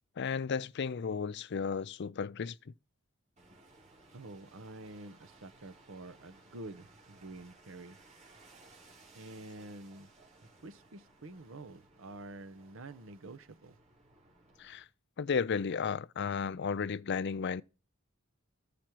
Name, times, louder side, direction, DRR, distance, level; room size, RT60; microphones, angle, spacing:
voice 1, 0.2-2.7 14.6-14.9 15.2-17.6, left 6 dB, 55° left, 0.4 m, -34 dB
sound 1, 3.4-14.8, right 2 dB, 35° right, 4.3 m, -60 dB
voice 2, 4.1-8.0 9.1-10.1 10.6-13.8, right 2 dB, 70° right, 0.8 m, -48 dB
14.5 x 5.0 x 4.5 m
head